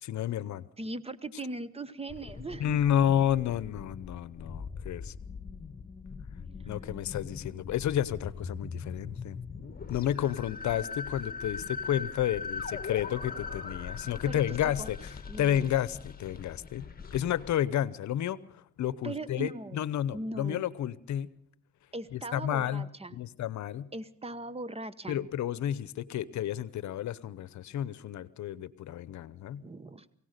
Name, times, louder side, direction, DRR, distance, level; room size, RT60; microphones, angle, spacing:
voice 1, 0.0-0.6 2.6-5.1 6.7-9.4 9.9-15.0 15.4-16.9 17.1-21.3 22.1-23.9 25.1-29.6, left 11 dB, 70° left, 19 dB, 0.9 m, -31 dB
voice 2, 0.8-2.9 9.0-9.2 14.3-14.9 15.3-15.7 19.0-19.8 20.1-20.7 21.9-23.2 23.9-25.3 29.6-30.1, right 2 dB, 20° right, 16 dB, 1.1 m, -39 dB
sound 1, 2.1-17.5, left 5 dB, 30° left, 1.8 m, -41 dB
23.0 x 17.0 x 6.7 m, 0.62 s
cardioid pair, 90°, 30 cm